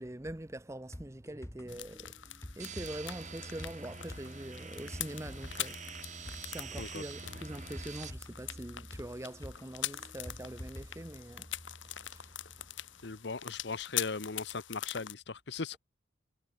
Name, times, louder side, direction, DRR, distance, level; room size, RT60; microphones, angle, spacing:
voice 1, 0.0-2.2 2.6-5.8 6.5-11.5 12.0-12.3, right 1 dB, 15° right, 0.8 m, -43 dB
sound 1, 0.9-11.0 11.3-11.4, left 1 dB, 15° left, 1.1 m, -49 dB
sound 2, 1.7-15.1, left 13 dB, 75° left, 1.9 m, -43 dB
sound 3, 2.6-8.1, right 5 dB, 40° right, 2.6 m, -46 dB
voice 2, 13.0-15.8, left 4 dB, 60° left, 0.9 m, -38 dB
head